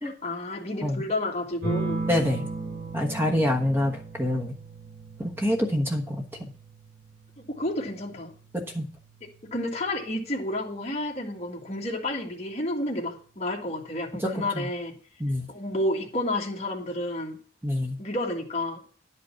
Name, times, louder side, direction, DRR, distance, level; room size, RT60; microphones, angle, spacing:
voice 1, 0.0-2.0 7.4-8.3 9.4-15.0 15.5-17.4 18.0-18.8, left 1 dB, 35° left, -1 dB, 1.8 m, -30 dB
Asus full OK, 1.6-10.7 12.1-12.7, right 3 dB, 40° right, 5.8 m, -37 dB
voice 2, 2.1-2.4 2.9-4.5 5.2-6.5 8.5-8.8 14.2-14.3 14.5-14.6 15.2-15.5 17.6-18.0, left 1 dB, 10° right, 3 dB, 1.2 m, -26 dB
10.5 x 5.4 x 5.7 m, 0.41 s
head